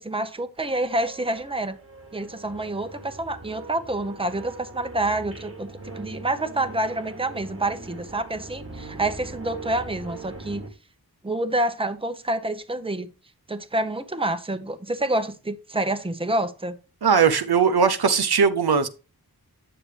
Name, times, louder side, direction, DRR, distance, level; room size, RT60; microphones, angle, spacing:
voice 1, 0.0-1.8 2.1-10.6 11.2-13.1 13.5-16.7, right 1 dB, 15° right, 0.8 m, -28 dB
sound 1, 0.6-10.7, right 2 dB, 35° right, 1.3 m, -41 dB
voice 2, 17.0-18.9, right 6 dB, 75° right, 0.7 m, -19 dB
8.7 x 6.7 x 3.3 m
wide cardioid pair, 50°, 38 cm